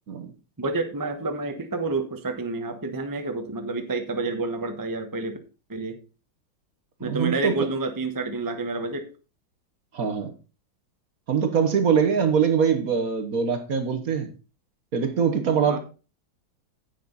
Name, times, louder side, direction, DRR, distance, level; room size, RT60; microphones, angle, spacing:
voice 1, 0.6-5.4 5.7-6.0 7.0-9.1 15.7-15.8, right 3 dB, 15° right, 6 dB, 0.8 m, -29 dB
voice 2, 7.0-7.5 9.9-10.3 11.3-14.3 14.9-15.8, right 6 dB, 50° right, 8 dB, 1.4 m, -23 dB
10.0 x 8.6 x 4.0 m, 0.33 s
omnidirectional pair, 2.2 m